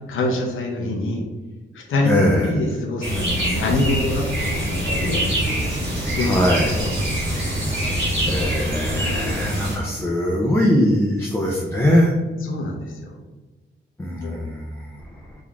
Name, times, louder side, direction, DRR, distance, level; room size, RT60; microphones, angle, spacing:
voice 1, 0.1-1.2 1.7-2.1 2.4-5.2 6.1-6.3 6.7-7.2 12.4-13.1 14.2-14.4, left 2 dB, 80° left, -1 dB, 0.6 m, -25 dB
voice 2, 2.0-2.5 6.2-6.8 8.3-12.1 14.0-15.1, equal, 10° left, -2 dB, 0.4 m, -21 dB
sound 1, 3.0-9.8, equal, 65° right, 1.4 m, -24 dB
3.7 x 3.0 x 2.3 m, 1.2 s
wide cardioid pair, 125°, 20 cm